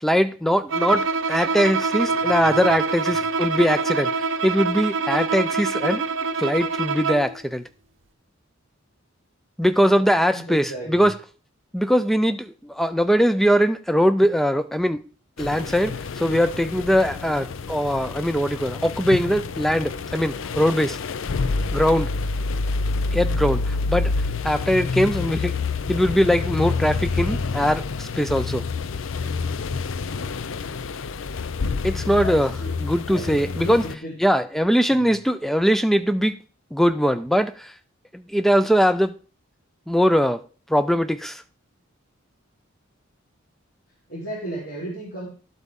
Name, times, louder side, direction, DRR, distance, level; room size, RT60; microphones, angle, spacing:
voice 1, 0.0-6.0 6.4-7.6 9.6-11.1 11.7-15.0 15.4-21.0 21.7-22.1 23.1-24.1 24.4-25.6 25.9-28.6 31.8-32.5 32.8-33.9 34.2-36.4 36.7-37.7 38.1-39.2 39.9-40.4 40.7-41.4, equal, ahead, 0.4 m, -21 dB
Bowed string instrument, 0.7-7.4, right 4 dB, 70° right, 0.8 m, -25 dB
voice 2, 2.1-2.8 9.8-9.9 10.3-11.1 29.2-29.5 32.1-32.8 33.1-34.2 34.9-35.1 44.1-45.3, right 1 dB, 55° left, 3.7 m, -35 dB
sound 1, 15.4-33.9, left 4 dB, 70° left, 0.5 m, -28 dB
12.0 x 8.0 x 3.6 m
head